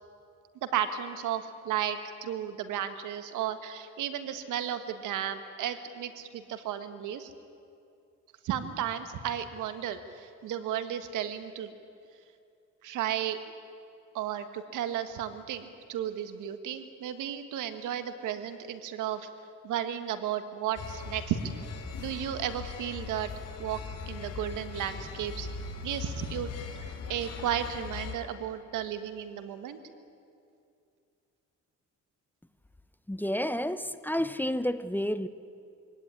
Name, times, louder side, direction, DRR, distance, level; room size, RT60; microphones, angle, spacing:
voice 1, 0.6-7.3 8.4-11.7 12.8-13.4 14.1-19.3 19.6-21.4 22.0-23.3 23.6-23.8 24.1-25.5 25.8-26.5 27.1-29.8, right 10 dB, 90° right, 1.7 m, -34 dB
sound 1, 20.8-28.2, left 5 dB, 55° left, 2.7 m, -40 dB
voice 2, 33.1-35.3, equal, 5° left, 0.8 m, -30 dB
23.5 x 17.0 x 9.7 m
cardioid pair, 90°, 30 cm